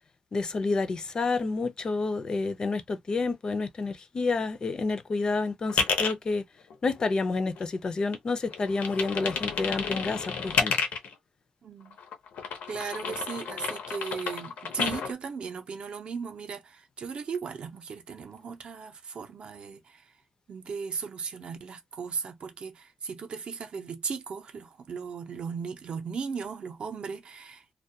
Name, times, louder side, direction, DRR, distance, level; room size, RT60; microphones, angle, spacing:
voice 1, 0.3-6.4 6.8-10.7, left 3 dB, 35° left, 0.4 m, -29 dB
sound 1, 5.7-6.1 6.7-7.9 8.1-11.1 11.9-15.1, left 5 dB, 85° left, 0.7 m, -31 dB
voice 2, 11.6-12.0 12.7-20.0 20.5-27.6, right 5 dB, 50° right, 0.5 m, -37 dB
2.2 x 2.2 x 2.6 m
wide cardioid pair, 150°, 2 cm